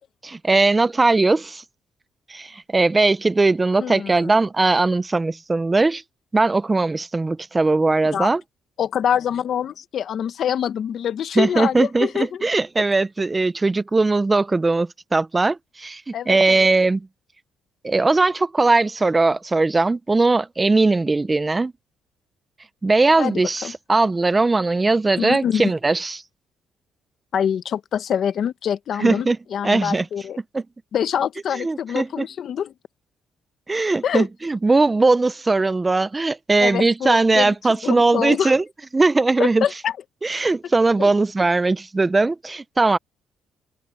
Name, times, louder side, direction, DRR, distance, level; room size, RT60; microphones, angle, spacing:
voice 1, 0.2-1.6 2.3-6.0 6.3-8.4 11.3-17.1 17.8-21.7 22.8-26.2 29.0-29.4 29.6-30.0 30.5-30.6 31.5-32.3 33.7-38.6 38.9-39.6 40.2-43.0, right 3 dB, 20° right, 0.5 m, -19 dB
voice 2, 3.8-4.3 8.1-8.3 8.8-12.4 16.1-16.4 23.2-23.7 25.2-25.7 27.3-30.4 30.9-32.7 34.0-34.3 36.6-37.5 37.8-38.6 39.4-40.0 41.0-41.1, left 8 dB, 55° left, 1.0 m, -25 dB
open air
cardioid pair, 125°, 0 cm